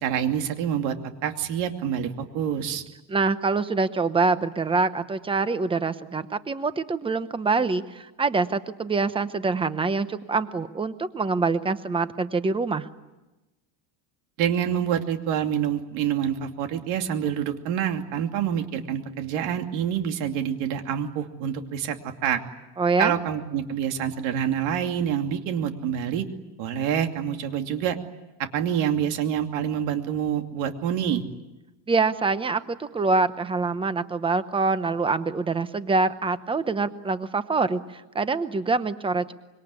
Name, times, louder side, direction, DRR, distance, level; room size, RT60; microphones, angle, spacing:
voice 1, 0.0-1.0 1.2-2.8 14.4-22.4 23.0-26.3 26.6-28.0 28.5-31.2, right 9 dB, 85° right, 5 dB, 2.8 m, -27 dB
voice 2, 3.1-12.9 22.8-23.2 31.9-39.3, right 4 dB, 10° right, 12 dB, 0.9 m, -25 dB
25.5 x 23.0 x 9.7 m, 1.1 s
cardioid pair, 170°, 44 cm